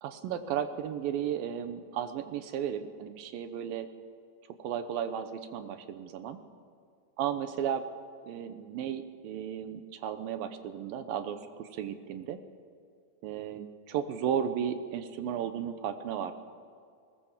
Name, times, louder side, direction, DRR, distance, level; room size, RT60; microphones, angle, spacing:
voice 1, 0.0-3.9 4.6-6.4 7.2-7.9 8.2-12.4 13.2-16.3, right 9 dB, 80° right, 9 dB, 2.6 m, -34 dB
20.0 x 20.0 x 7.3 m, 2.2 s
omnidirectional pair, 4.2 m